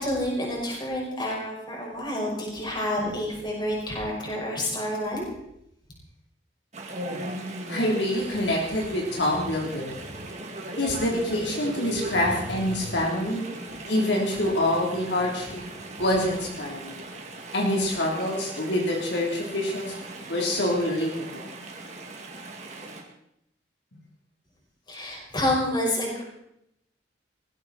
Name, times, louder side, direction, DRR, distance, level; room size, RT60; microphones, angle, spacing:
voice 1, 0.0-5.3 24.9-26.2, left 1 dB, 25° left, -2 dB, 5.5 m, -28 dB
Chatter / Stream, 6.7-23.0, right 2 dB, 40° right, 2.6 m, -39 dB
voice 2, 7.7-10.0 10.8-13.5 13.8-15.6 16.0-17.0 17.5-19.9 20.3-21.5, left 1 dB, 70° left, -1 dB, 3.7 m, -26 dB
19.0 x 15.0 x 4.4 m, 0.77 s
head